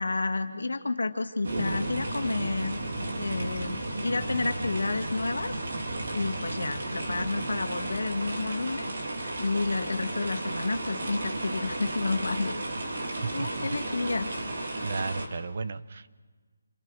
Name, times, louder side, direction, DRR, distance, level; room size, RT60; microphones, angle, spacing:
voice 1, 0.0-2.8 3.2-5.6 6.1-8.9 9.4-12.6 13.3-14.3, left 3 dB, 85° left, 6 dB, 2.0 m, -30 dB
sound 1, 1.4-15.3, right 2 dB, 65° right, 3.7 m, -33 dB
voice 2, 13.2-14.0 14.8-16.1, right 4 dB, 50° right, 13 dB, 0.8 m, -35 dB
29.0 x 23.0 x 4.8 m, 1.4 s
figure-of-eight pair, 165°, 0 cm